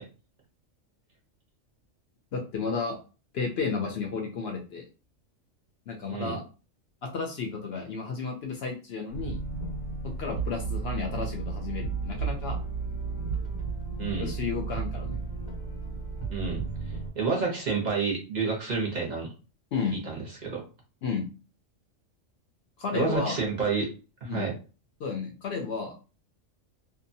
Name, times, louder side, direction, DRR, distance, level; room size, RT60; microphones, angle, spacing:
voice 1, 2.3-3.0 3.3-4.8 5.9-6.4 7.0-9.4 10.0-12.6 14.2-15.2 19.7-20.0 21.0-21.3 22.8-23.4 24.3-24.5 25.0-25.9, left 5 dB, 65° left, 2 dB, 0.7 m, -32 dB
sound 1, 9.1-17.1, right 4 dB, 85° left, 1.3 m, -33 dB
voice 2, 14.0-14.3 16.3-16.6 17.1-19.3 20.1-20.6 22.9-23.9 24.2-24.5, right 4 dB, 40° right, -2 dB, 0.7 m, -29 dB
2.6 x 2.2 x 2.6 m, 0.34 s
omnidirectional pair, 1.4 m